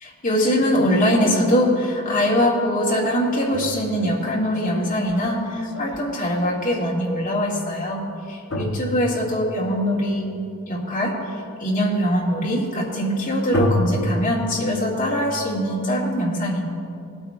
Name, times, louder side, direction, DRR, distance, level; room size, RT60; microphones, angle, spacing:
voice 1, 0.0-10.3 10.7-11.2 11.6-16.6, equal, 35° left, -5 dB, 2.0 m, -22 dB
sound 1, 3.1-6.8 8.5-9.6 13.5-14.2, equal, 60° left, 1.0 m, -28 dB
19.5 x 8.7 x 2.4 m, 2.5 s
head